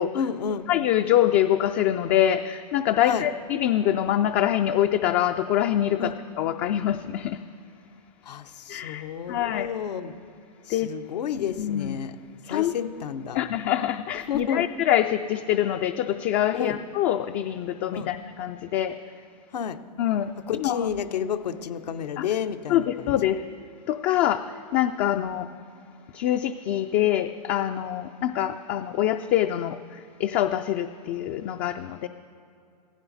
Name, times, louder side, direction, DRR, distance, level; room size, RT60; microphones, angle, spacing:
voice 1, 0.1-0.7 3.0-3.2 6.0-6.1 8.3-10.2 10.7-12.1 12.5-13.4 14.3-14.7 16.5-16.8 17.9-18.1 19.5-19.8 20.5-22.8 25.1-25.2, left 8 dB, 75° left, 7 dB, 1.0 m, -30 dB
voice 2, 0.7-7.4 8.7-9.7 10.7-10.9 11.6-12.0 12.5-12.7 13.3-19.0 20.0-20.9 22.2-22.3 22.7-23.4 23.9-24.4 24.7-25.5 26.1-29.8 30.2-32.1, left 11 dB, 35° left, 7 dB, 0.4 m, -25 dB
16.5 x 15.5 x 4.1 m, 2.5 s
hypercardioid pair, 135°, 21 cm